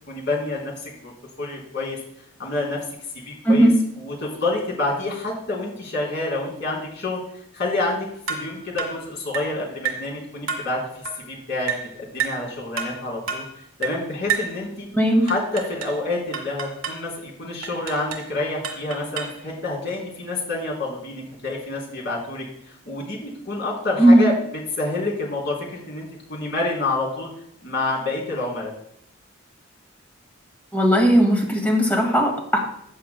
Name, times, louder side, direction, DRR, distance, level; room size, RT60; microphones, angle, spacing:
voice 1, 0.1-1.1 1.4-2.0 2.4-2.8 3.1-3.7 4.0-7.2 7.5-13.4 13.8-14.9 15.2-27.3 27.6-28.7, left 2 dB, 55° left, -2 dB, 3.3 m, -28 dB
sound 1, 8.3-8.5 8.8-9.0 9.3-9.5 9.8-10.1 10.5-10.7 11.0-11.2 11.7-11.9 12.2-12.4 12.8-13.0 13.3-13.5 13.8-14.0 14.3-14.6 15.3-16.0 16.3-17.0 17.6-18.3 18.6-19.4, right 6 dB, 80° right, 1.6 m, -29 dB
voice 2, 14.9-15.3 24.0-24.2 30.7-32.6, right 1 dB, 10° left, 0 dB, 2.0 m, -17 dB
14.0 x 8.3 x 2.2 m, 0.69 s
head